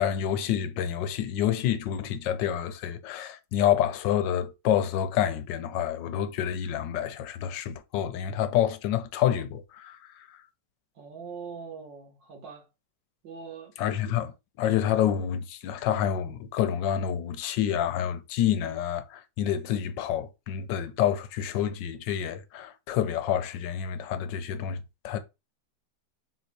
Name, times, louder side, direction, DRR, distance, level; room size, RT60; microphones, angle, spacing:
voice 1, 0.0-10.4 13.8-25.2, left 10 dB, 85° left, 1.3 m, -28 dB
voice 2, 11.0-12.7 13.2-13.8, right 5 dB, 85° right, 1.9 m, -42 dB
4.1 x 2.7 x 4.5 m
omnidirectional pair, 1.9 m